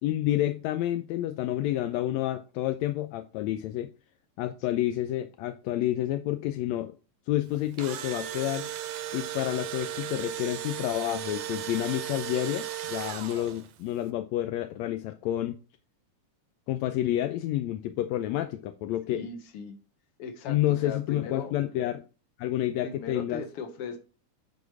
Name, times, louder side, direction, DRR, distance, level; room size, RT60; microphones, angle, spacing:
voice 1, 0.0-3.9 4.4-6.9 7.3-8.7 9.1-15.6 16.7-19.2 20.5-22.0 22.4-23.4, left 13 dB, 80° left, 1.6 m, -29 dB
Engine / Drill, 7.5-13.8, right 12 dB, 75° right, 2.0 m, -36 dB
voice 2, 19.1-19.8 20.2-21.6 22.8-24.0, left 5 dB, 55° left, 1.9 m, -38 dB
10.0 x 4.2 x 4.8 m
omnidirectional pair, 3.6 m